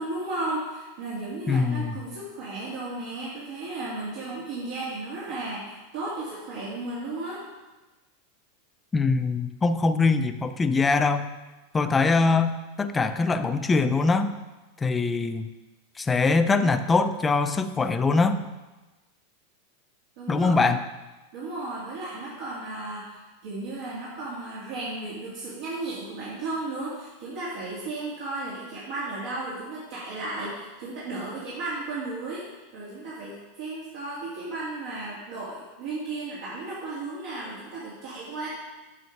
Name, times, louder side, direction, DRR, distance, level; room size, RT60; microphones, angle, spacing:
voice 1, 0.0-7.4 20.2-20.6 21.3-32.4 32.7-38.5, right 2 dB, 70° right, -8 dB, 2.5 m, -34 dB
voice 2, 1.5-2.0 8.9-11.3 11.7-14.3 14.8-15.5 16.0-18.4 20.3-20.8, left 4 dB, 15° left, 9 dB, 0.5 m, -23 dB
7.9 x 5.7 x 4.6 m, 1.1 s
supercardioid pair, 120°, 0 cm